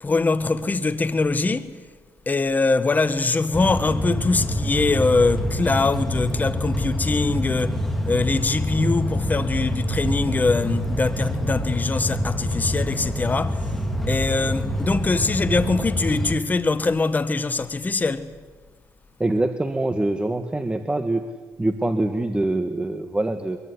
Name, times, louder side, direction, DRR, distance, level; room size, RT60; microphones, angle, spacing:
voice 1, 0.0-1.7 2.3-13.6 14.1-18.3, left 3 dB, 25° left, 1.6 m, -23 dB
sound 1, 3.5-16.4, equal, 5° left, 3.7 m, -26 dB
voice 2, 19.2-21.2 21.6-23.6, right 2 dB, 15° right, 1.7 m, -24 dB
24.0 x 22.5 x 9.9 m
cardioid pair, 95°, 7 cm